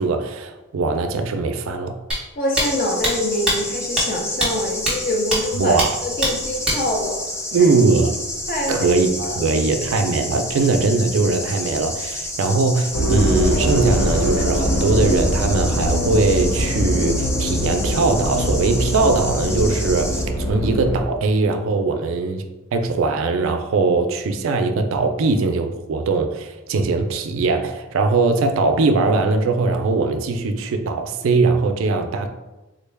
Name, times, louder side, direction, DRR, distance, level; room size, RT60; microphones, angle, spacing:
voice 1, 0.0-1.9 5.6-5.9 7.5-8.2 8.7-20.1 20.4-22.4 22.7-32.3, right 3 dB, 75° right, 6 dB, 0.4 m, -20 dB
sound 1, 2.1-2.2 2.6-2.7 3.0-3.1 3.5-3.6 4.0-4.1 4.4-4.5 4.9-5.0 5.3-5.4 5.8-5.9 6.2-6.3 6.7-6.8, right 1 dB, 5° right, 1.0 m, -20 dB
voice 2, 2.4-7.2 8.5-8.9 9.2-10.4, left 1 dB, 45° left, -1 dB, 0.7 m, -25 dB
sound 2, 2.5-20.2, left 1 dB, 15° left, 0.3 m, -30 dB
sound 3, 12.9-21.0, equal, 80° left, 0.6 m, -22 dB
3.8 x 2.1 x 3.3 m, 1.1 s
head